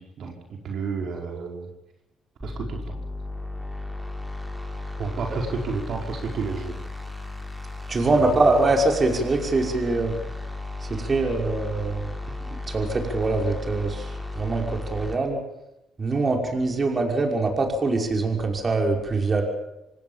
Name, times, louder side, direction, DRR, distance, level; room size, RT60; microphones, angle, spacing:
voice 1, 0.0-1.7 2.4-3.0 5.0-6.7 8.0-8.5, right 4 dB, 65° right, 1 dB, 5.1 m, -31 dB
sound 1, 2.4-15.1, left 2 dB, 5° right, 6.1 m, -35 dB
voice 2, 7.9-10.1 10.9-12.1 12.7-14.1 14.4-15.4 16.0-19.4, right 3 dB, 35° right, 2 dB, 5.7 m, -23 dB
26.5 x 18.5 x 7.3 m, 0.91 s
cardioid pair, 90°, 0 cm